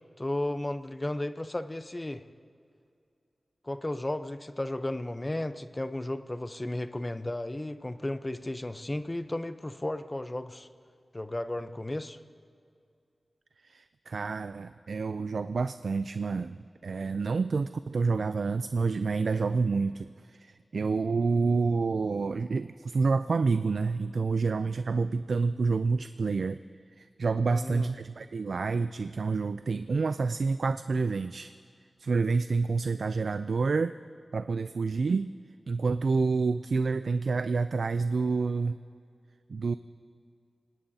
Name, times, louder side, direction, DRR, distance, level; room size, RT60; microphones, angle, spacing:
voice 1, 0.2-2.2 3.6-10.7 11.1-12.2 27.4-27.9, left 1 dB, 25° left, 11 dB, 0.6 m, -34 dB
voice 2, 13.6-16.6 16.8-26.6 27.0-31.5 32.0-34.0 34.3-35.3 35.7-38.8 39.5-39.7, right 4 dB, 80° right, 12 dB, 0.3 m, -28 dB
27.0 x 18.5 x 2.7 m, 2.4 s
wide cardioid pair, 60°, 0 cm